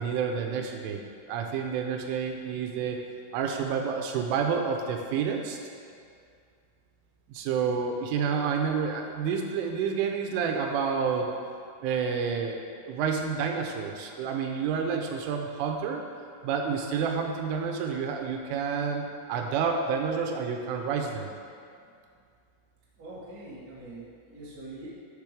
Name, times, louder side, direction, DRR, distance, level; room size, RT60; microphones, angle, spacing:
voice 1, 0.0-3.0 3.3-5.6 7.3-11.3 11.8-12.6 12.9-16.0 16.4-21.3, right 6 dB, 85° right, 3 dB, 3.2 m, -29 dB
voice 2, 23.0-24.9, right 2 dB, 55° right, -9 dB, 1.0 m, -44 dB
11.5 x 6.7 x 3.4 m, 2.3 s
omnidirectional pair, 5.6 m